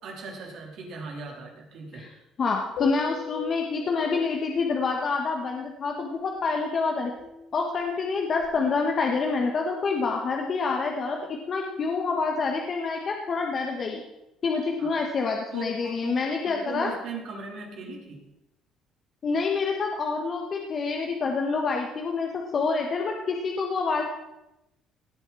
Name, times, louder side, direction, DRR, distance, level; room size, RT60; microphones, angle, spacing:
voice 1, 0.0-2.1 14.8-15.0 15.5-18.2, right 4 dB, 65° right, -1 dB, 3.8 m, -39 dB
voice 2, 2.4-7.1 7.5-14.0 14.4-16.9 19.2-24.0, left 4 dB, 45° left, 1 dB, 1.6 m, -27 dB
sound 1, 2.8-5.0 7.2-8.7, left 10 dB, 85° left, 2.8 m, -40 dB
18.0 x 8.1 x 4.3 m, 0.91 s
cardioid pair, 90°, 0 cm